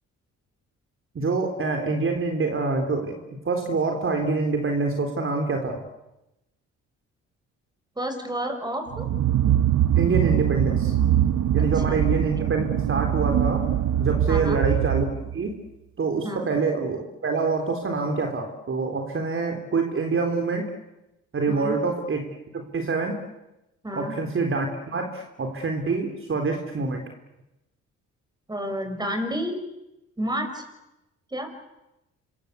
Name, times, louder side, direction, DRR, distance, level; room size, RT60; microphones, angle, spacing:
voice 1, 1.1-3.2 3.4-5.8 10.0-10.9 11.5-13.7 14.0-15.6 16.0-20.7 21.3-22.3 22.5-23.2 23.9-27.0, right 4 dB, 45° right, 4 dB, 4.0 m, -26 dB
voice 2, 8.0-9.1 11.6-12.0 14.3-14.6 16.2-16.5 21.5-21.8 23.8-24.1 28.5-29.6 30.2-30.6 31.3-31.5, equal, 15° right, 7 dB, 6.4 m, -30 dB
sound 1, 8.9-15.4, right 11 dB, 70° right, 1.2 m, -23 dB
27.0 x 24.0 x 8.3 m, 0.94 s
cardioid pair, 90°, 30 cm